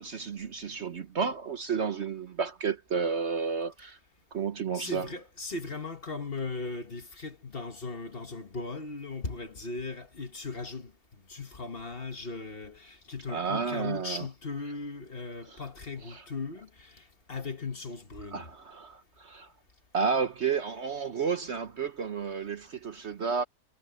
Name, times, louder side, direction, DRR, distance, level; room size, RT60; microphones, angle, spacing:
voice 1, 0.0-4.0 4.3-5.1 13.3-14.3 15.5-15.6 16.1-16.2 18.3-19.5 19.9-23.4, right 5 dB, 50° right, 1.1 m, -31 dB
voice 2, 4.7-18.5, left 3 dB, 40° left, 1.5 m, -38 dB
omnidirectional pair, 1.6 m